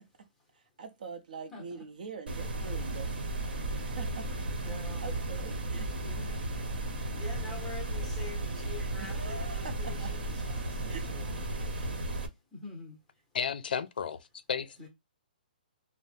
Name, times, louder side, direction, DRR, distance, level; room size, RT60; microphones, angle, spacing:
voice 1, 0.8-3.1 3.8-4.3 5.0-5.9 9.0-10.1 10.9-11.1, right 5 dB, 55° right, 0.7 m, -43 dB
sound 1, 2.3-12.3, right 2 dB, 80° right, 1.0 m, -34 dB
voice 2, 4.6-5.2 5.7-6.4 7.1-9.9 10.5-11.3 11.6-12.0 12.5-13.0 14.8-14.9, left 4 dB, 5° left, 0.7 m, -46 dB
voice 3, 13.3-14.9, left 7 dB, 70° left, 0.4 m, -34 dB
2.7 x 2.0 x 3.2 m
hypercardioid pair, 170°, 5 cm